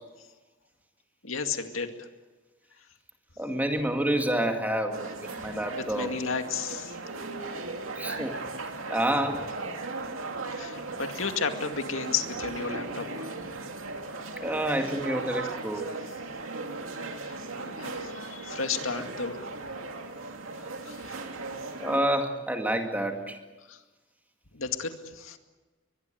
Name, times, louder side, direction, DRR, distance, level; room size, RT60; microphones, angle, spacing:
voice 1, 1.2-2.1 5.4-7.0 10.5-13.5 16.1-16.2 16.9-19.5 20.8-21.2 23.7-23.8 24.5-25.4, left 5 dB, 85° left, 6 dB, 2.2 m, -34 dB
voice 2, 3.4-6.1 8.0-8.4 8.9-9.4 14.4-15.8 21.8-23.4, right 1 dB, 10° right, 4 dB, 2.2 m, -28 dB
sound 1, 4.9-22.0, right 3 dB, 90° right, 2.5 m, -37 dB
23.0 x 21.5 x 9.1 m, 1.2 s
head